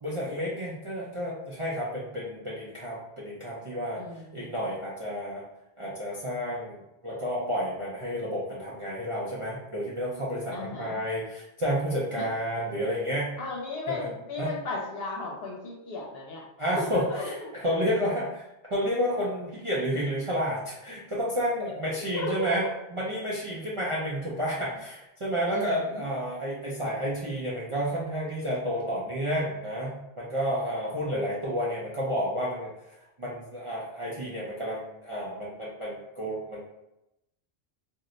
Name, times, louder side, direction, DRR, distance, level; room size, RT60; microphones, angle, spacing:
voice 1, 0.0-4.0 4.3-5.4 5.8-13.3 14.0-14.1 14.4-14.5 16.6-22.6 22.9-32.7 33.2-36.6, equal, 45° right, -7 dB, 0.4 m, -31 dB
voice 2, 4.0-4.5 10.5-11.0 12.2-12.3 13.4-16.4 16.7-17.3 21.6-21.7 22.1-22.7 25.5-26.1, left 3 dB, 65° left, -2 dB, 0.9 m, -35 dB
2.6 x 2.1 x 3.7 m, 0.89 s
omnidirectional pair, 1.2 m